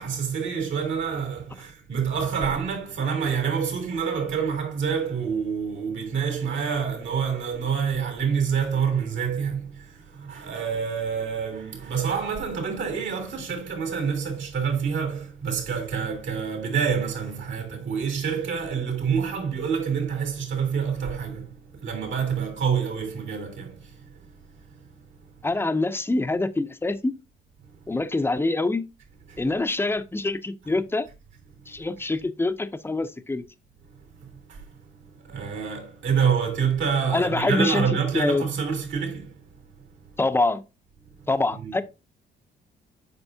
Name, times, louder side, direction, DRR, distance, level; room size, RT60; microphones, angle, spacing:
voice 1, 0.0-25.5 27.6-28.0 29.3-29.4 31.5-31.9 33.9-40.2 41.0-41.3 41.5-41.7, right 6 dB, 70° right, 3.2 m, -28 dB
voice 2, 25.4-27.1 27.9-28.9 29.4-31.1 31.7-33.4 37.1-37.8 38.1-38.4 40.2-40.6 41.3-41.8, left 2 dB, 10° left, 0.7 m, -25 dB
8.0 x 5.3 x 2.8 m
cardioid pair, 90°, 20 cm